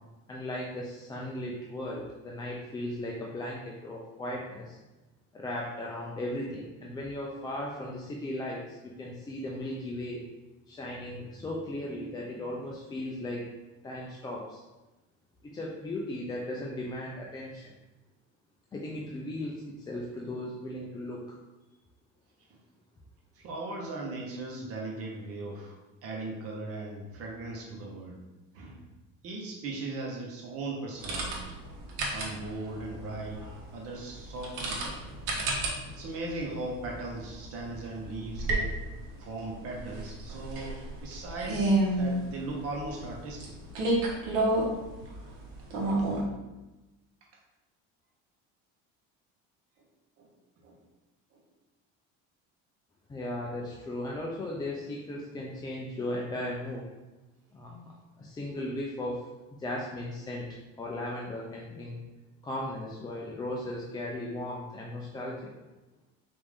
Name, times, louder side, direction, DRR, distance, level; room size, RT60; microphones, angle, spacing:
voice 1, 0.3-4.8 5.3-10.3 10.7-13.5 13.8-14.6 15.4-17.7 18.7-21.4 53.1-56.9 57.5-59.3 59.6-60.5 60.8-62.0 62.4-65.6, left 1 dB, 15° left, -3 dB, 0.3 m, -37 dB
voice 2, 23.3-25.7 26.0-28.2 28.5-28.8 29.2-31.5 32.0-33.4 33.7-35.1 35.9-38.8 39.2-43.5 50.2-50.3 50.6-50.8 51.3-51.4, right 2 dB, 45° right, -1 dB, 0.9 m, -38 dB
sound 1, 31.0-46.2, right 2 dB, 80° right, 1.1 m, -32 dB
5.0 x 2.6 x 3.5 m, 1.1 s
cardioid pair, 150°, 32 cm